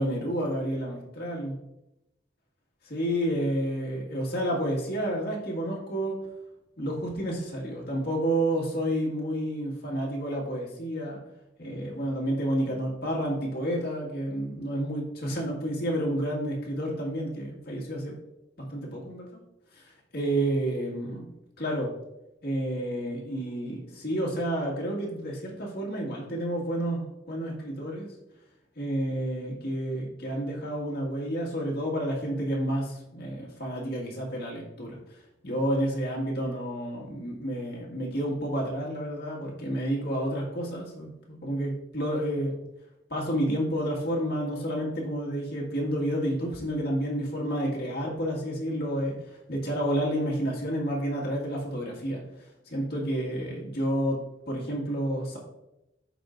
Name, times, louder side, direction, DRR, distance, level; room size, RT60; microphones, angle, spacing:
voice 1, 0.0-1.6 2.9-6.2 6.8-11.2 11.6-18.1 18.6-19.4 19.7-19.8 20.1-21.3 21.6-21.9 22.4-28.1 28.8-34.9 35.4-42.6 43.1-49.1 49.5-52.2 52.7-54.2 54.5-55.4, right 1 dB, 55° left, -3 dB, 2.0 m, -30 dB
12.5 x 4.5 x 2.6 m, 0.90 s
head